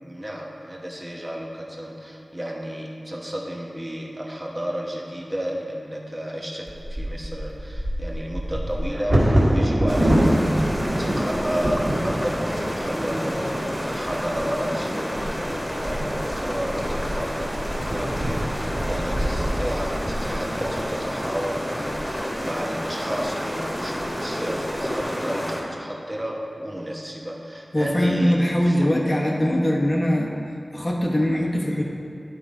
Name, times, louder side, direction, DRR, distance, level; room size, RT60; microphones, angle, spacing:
voice 1, 0.0-10.7 11.0-29.4, equal, 20° right, -2 dB, 1.0 m, -32 dB
Bird vocalization bird call bird song / Wind / Thunder, 6.7-22.6 23.2-23.3 23.6-24.0 24.5-25.0, right 1 dB, 45° right, 1.8 m, -26 dB
sound 1, 9.9-25.6, equal, 10° left, 1.5 m, -30 dB
voice 2, 27.7-30.3 30.7-31.8, equal, 35° left, -2 dB, 1.0 m, -21 dB
11.0 x 3.9 x 4.8 m, 2.6 s
wide cardioid pair, 70°, 0 cm